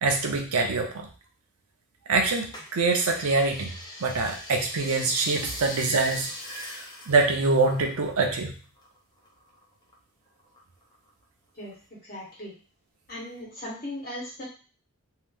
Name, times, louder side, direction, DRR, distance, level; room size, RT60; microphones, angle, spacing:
voice 1, 0.0-1.1 2.1-3.7 4.0-8.6, right 3 dB, 80° right, 2 dB, 0.6 m, -25 dB
sound 1, 2.5-8.4 8.6-9.9 10.4-11.2 11.7-11.8, left 1 dB, 20° left, 0.6 m, -41 dB
voice 2, 11.6-12.5 13.1-14.4, left 1 dB, 40° left, -5 dB, 1.2 m, -38 dB
2.8 x 2.0 x 3.4 m, 0.37 s
head